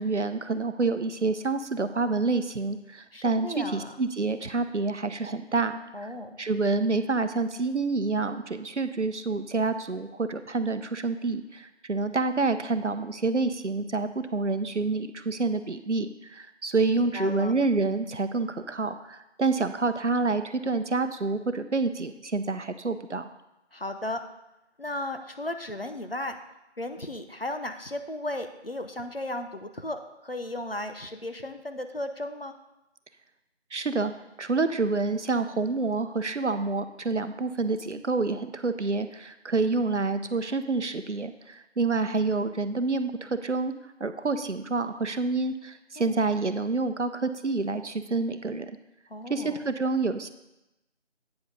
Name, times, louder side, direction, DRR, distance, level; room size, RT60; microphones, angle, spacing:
voice 1, 0.0-6.1 6.4-23.3 33.7-34.1 34.4-43.7 44.0-48.7 49.3-50.3, right 3 dB, 75° right, 10 dB, 0.8 m, -28 dB
voice 2, 3.1-4.0 5.9-6.4 17.0-17.5 23.7-24.2 24.8-26.4 26.8-32.6 46.0-46.2 49.1-49.6, left 1 dB, 55° left, 7 dB, 0.8 m, -35 dB
9.0 x 5.3 x 5.2 m, 0.92 s
figure-of-eight pair, 180°, 36 cm